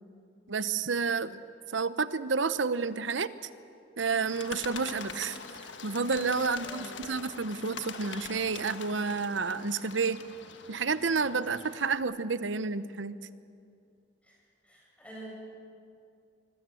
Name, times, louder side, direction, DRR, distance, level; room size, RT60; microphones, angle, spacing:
voice 1, 0.5-1.4 1.7-3.3 4.0-5.4 5.8-10.2 10.7-13.1, right 4 dB, 85° right, 14 dB, 0.9 m, -30 dB
Bird, 4.3-12.0, left 5 dB, 80° left, 1.5 m, -44 dB
voice 2, 6.6-6.9 14.2-14.3 14.6-15.3, right 1 dB, 5° left, -4 dB, 7.9 m, -47 dB
25.5 x 21.0 x 7.7 m, 2.5 s
head